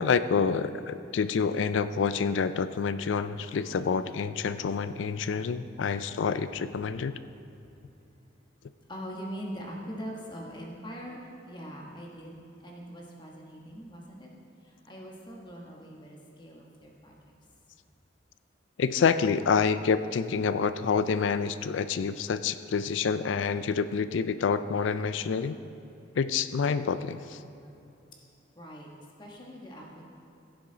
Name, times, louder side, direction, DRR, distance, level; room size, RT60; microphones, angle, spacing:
voice 1, 0.0-7.2 18.8-25.6 26.2-27.4, left 5 dB, 75° left, 13 dB, 0.4 m, -27 dB
voice 2, 8.9-14.3 14.6-17.2 22.7-22.9 28.5-28.9 29.2-30.1, equal, 25° left, -1 dB, 1.3 m, -42 dB
16.0 x 7.0 x 3.9 m, 2.8 s
head